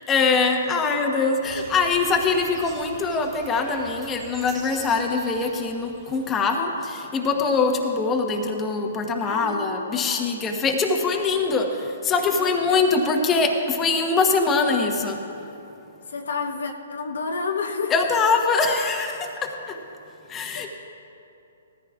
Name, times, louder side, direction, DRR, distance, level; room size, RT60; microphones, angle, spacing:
voice 1, 0.1-15.2 17.9-19.8 20.3-20.7, left 4 dB, 20° left, 3 dB, 1.2 m, -23 dB
sound 1, 1.4-6.4, right 4 dB, 20° right, 2.0 m, -44 dB
voice 2, 9.2-10.4 12.4-12.9 13.2-13.3 16.1-17.9 20.5-20.7, left 4 dB, 70° left, 5 dB, 0.8 m, -31 dB
19.0 x 14.0 x 2.5 m, 2.8 s
hypercardioid pair, 125°, 0 cm